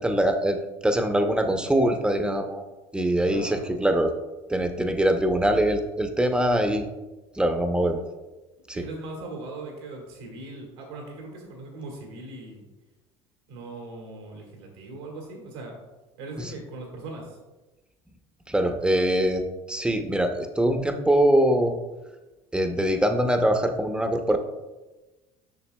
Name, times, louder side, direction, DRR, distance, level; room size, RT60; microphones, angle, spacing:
voice 1, 0.0-2.6 2.9-4.1 4.5-6.9 7.4-8.0 8.7-8.8 16.4-16.5 18.5-21.8 22.5-24.4, right 1 dB, 5° right, 6 dB, 0.7 m, -23 dB
voice 2, 3.2-3.8 8.7-12.6 13.5-15.8 16.2-17.4, right 2 dB, 90° right, 0 dB, 1.6 m, -39 dB
7.1 x 5.8 x 2.3 m, 1.1 s
supercardioid pair, 85°, 13 cm